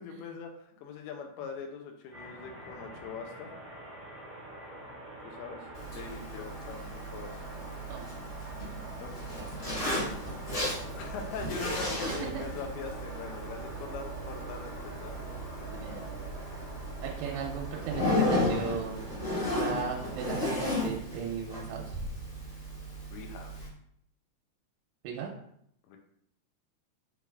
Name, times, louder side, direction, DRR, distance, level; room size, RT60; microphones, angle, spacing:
voice 1, 0.0-3.5 5.2-7.4 9.0-9.2 11.0-15.1 23.1-23.6 25.9-26.0, left 5 dB, 80° left, 3 dB, 2.3 m, -42 dB
sound 1, 2.1-20.6, right 1 dB, 70° right, 0.9 m, -44 dB
Zipper (clothing), 5.7-23.7, left 1 dB, 40° left, 1.7 m, -35 dB
voice 2, 12.1-12.5 15.7-16.2 17.0-19.0 19.6-22.0 25.0-25.3, right 6 dB, 90° right, -1 dB, 2.8 m, -37 dB
6.8 x 3.2 x 2.3 m, 0.70 s
omnidirectional pair, 5.0 m